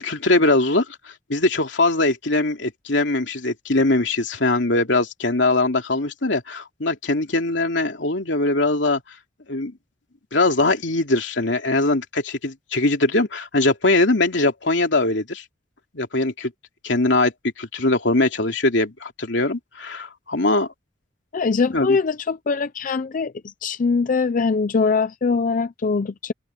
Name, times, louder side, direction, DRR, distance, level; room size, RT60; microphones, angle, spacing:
voice 1, 0.0-9.0 9.5-9.8 10.3-15.4 15.9-16.5 16.8-20.7 21.7-22.0, left 2 dB, 80° left, 2.9 m, -21 dB
voice 2, 21.3-26.3, left 4 dB, 45° left, 0.5 m, -22 dB
open air
head